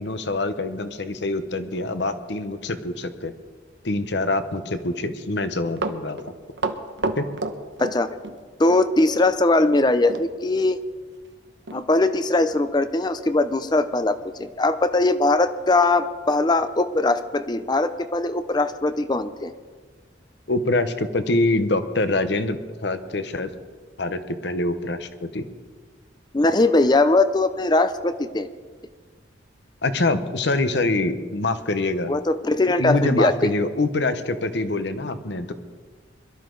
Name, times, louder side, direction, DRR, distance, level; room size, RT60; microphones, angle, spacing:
voice 1, 0.0-3.3 3.8-6.2 7.2-7.3 20.5-23.5 24.0-25.4 29.8-32.1 32.8-35.5, left 2 dB, 65° left, 10 dB, 0.9 m, -25 dB
Run, 5.5-8.4 8.7-8.8 10.1-10.3 10.6-10.7 11.2-11.3 11.7-11.8 12.4-12.5, right 3 dB, 65° right, 0.9 m, -29 dB
voice 2, 7.8-8.2 8.6-10.8 11.7-19.5 26.3-28.5 32.1-33.5, left 2 dB, 20° left, 12 dB, 0.5 m, -20 dB
22.0 x 12.5 x 3.9 m, 1.5 s
head